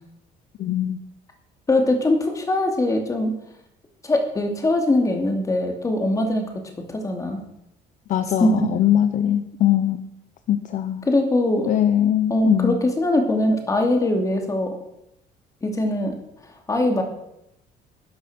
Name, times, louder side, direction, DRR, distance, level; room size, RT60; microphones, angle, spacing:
voice 1, 0.6-1.0 8.1-10.0 10.5-11.1 11.7-12.8, left 11 dB, 45° left, 10 dB, 0.8 m, -21 dB
voice 2, 1.7-3.4 4.0-6.4 6.9-7.4 8.4-8.7 11.0-11.7 12.3-14.8 15.6-16.2 16.7-17.0, left 1 dB, 20° left, 3 dB, 2.5 m, -21 dB
13.5 x 10.5 x 6.2 m, 0.82 s
cardioid pair, 150°, 17 cm